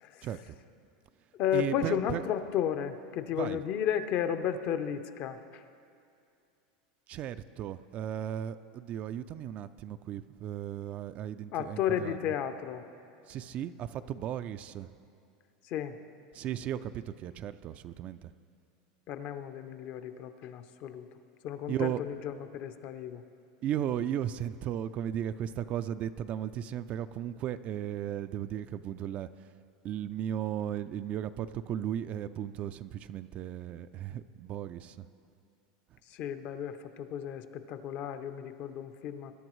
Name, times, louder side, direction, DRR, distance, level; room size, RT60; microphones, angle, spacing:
voice 1, 0.2-0.6 1.5-2.2 3.3-3.6 7.1-12.4 13.3-14.9 16.3-18.3 21.7-22.0 23.6-29.5 29.8-35.1 35.9-36.0, right 10 dB, 35° right, 12 dB, 0.3 m, -36 dB
voice 2, 1.4-5.6 11.5-12.8 15.7-16.0 19.1-21.1 21.4-23.2 36.1-39.3, left 9 dB, 50° left, 9 dB, 0.7 m, -33 dB
21.5 x 10.5 x 3.1 m, 2.5 s
supercardioid pair, 135°, 4 cm